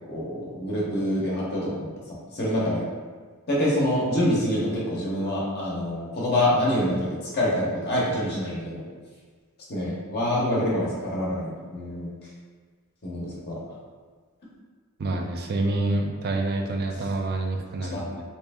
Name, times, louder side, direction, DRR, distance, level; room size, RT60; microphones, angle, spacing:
voice 1, 0.1-2.8 3.5-8.9 9.7-12.1 13.0-13.6 16.9-17.1 17.9-18.0, left 1 dB, 50° left, -6 dB, 0.8 m, -26 dB
voice 2, 15.0-18.2, right 2 dB, 45° right, 3 dB, 0.4 m, -27 dB
3.1 x 2.9 x 3.4 m, 1.6 s
head